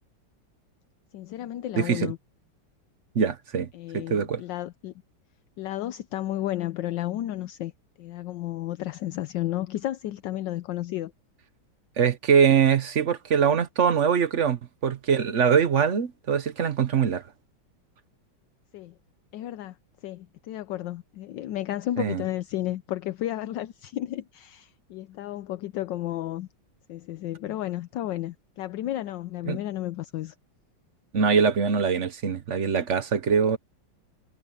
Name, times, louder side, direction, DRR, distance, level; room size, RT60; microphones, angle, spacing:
voice 1, 1.1-2.2 3.7-4.9 5.6-7.7 8.0-11.1 18.7-18.9 19.3-19.8 20.0-26.5 26.9-30.3, left 14 dB, 75° left, 1.3 m, -32 dB
voice 2, 1.7-2.1 3.1-3.7 3.9-4.4 12.0-17.2 22.0-22.2 29.5-29.6 31.1-33.6, right 7 dB, 45° right, 1.0 m, -23 dB
omnidirectional pair, 2.1 m